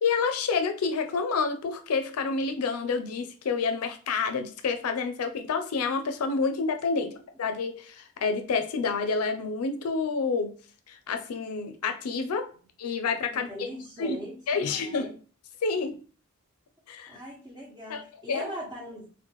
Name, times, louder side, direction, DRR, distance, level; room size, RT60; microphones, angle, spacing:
voice 1, 0.0-7.1 7.4-10.5 10.9-12.5 12.8-13.5 14.0-14.2 14.5-15.1 15.6-16.0 16.9-17.2 17.9-18.0 18.3-18.4, left 4 dB, 75° left, 7 dB, 0.5 m, -28 dB
voice 2, 13.3-15.2 15.8-15.9 17.1-19.1, equal, 20° right, -4 dB, 1.4 m, -40 dB
4.4 x 2.2 x 2.9 m, 0.40 s
head